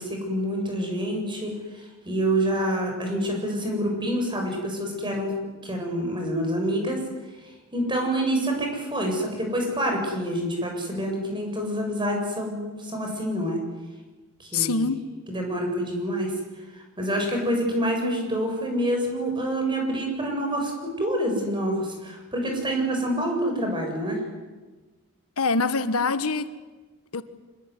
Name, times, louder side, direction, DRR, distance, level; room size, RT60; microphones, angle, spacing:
voice 1, 0.0-5.3 5.6-7.0 7.7-13.6 14.4-14.9 15.3-16.3 16.7-24.2, right 1 dB, 20° right, 7.7 m, -27 dB
voice 2, 14.5-14.9 25.4-26.5 27.1-27.2, left 4 dB, 80° left, 1.4 m, -24 dB
26.0 x 21.5 x 9.8 m
head